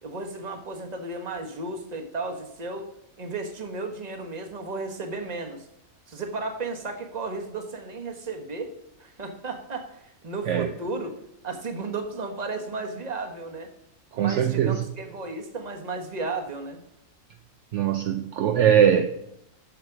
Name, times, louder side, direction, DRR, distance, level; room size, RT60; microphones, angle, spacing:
voice 1, 0.0-2.9 3.2-5.7 6.1-8.7 9.0-11.1 11.4-13.7 14.1-16.8, right 3 dB, 30° right, 4 dB, 1.2 m, -34 dB
voice 2, 14.1-14.8 17.7-19.1, right 9 dB, 65° right, 7 dB, 0.9 m, -21 dB
7.1 x 6.6 x 5.9 m, 0.77 s
omnidirectional pair, 1.4 m